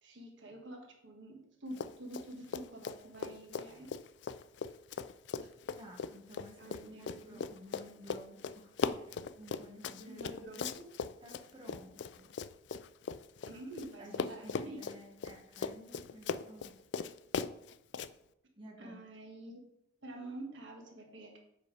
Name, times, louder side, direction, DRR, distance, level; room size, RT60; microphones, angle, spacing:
voice 1, 0.0-3.9 6.6-7.4 10.1-10.8 13.4-14.8 18.8-19.6 20.0-21.4, right 1 dB, 70° right, 1 dB, 1.4 m, -47 dB
Run, 1.7-2.3 2.5-13.9 14.1-18.1, left 5 dB, 60° left, 0.3 m, -39 dB
voice 2, 5.7-10.9 11.2-12.3 14.0-16.8 18.5-19.0, equal, 25° right, -1 dB, 1.5 m, -54 dB
7.7 x 5.4 x 4.7 m, 0.79 s
head